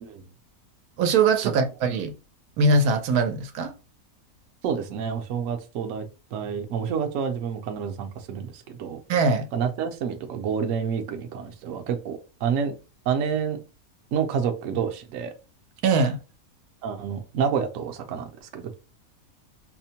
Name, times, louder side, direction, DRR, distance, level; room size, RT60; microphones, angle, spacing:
voice 1, 1.0-2.1 2.6-3.7 9.1-9.5 15.8-16.2, right 3 dB, 90° right, 1.1 m, -21 dB
voice 2, 4.6-9.0 9.5-12.8 13.1-13.6 14.1-15.3 16.8-18.7, right 7 dB, 65° right, 0.9 m, -28 dB
4.2 x 2.1 x 2.8 m
omnidirectional pair, 1.5 m